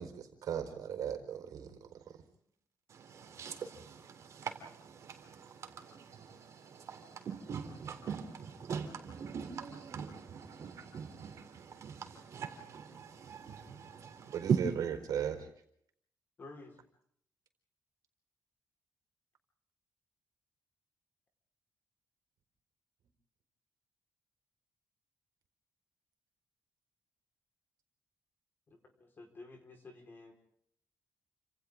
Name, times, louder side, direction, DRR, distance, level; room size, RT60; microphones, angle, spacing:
voice 1, 0.0-2.2 14.3-15.5, right 8 dB, 65° right, 4.5 m, -37 dB
voice 2, 2.9-14.6, right 7 dB, 50° right, 3.5 m, -41 dB
voice 3, 16.4-16.8 28.9-30.3, left 3 dB, 30° left, 4.5 m, -51 dB
30.0 x 27.0 x 3.8 m
wide cardioid pair, 180°, 7 cm